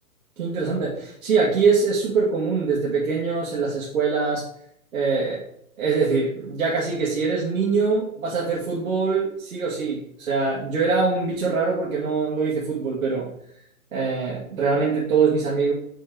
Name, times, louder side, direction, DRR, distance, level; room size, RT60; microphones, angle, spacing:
voice 1, 0.4-4.4 4.9-5.4 5.8-13.2 13.9-15.7, right 4 dB, 70° right, -6 dB, 2.0 m, -23 dB
5.5 x 4.6 x 4.6 m, 0.72 s
hypercardioid pair, 155°, 43 cm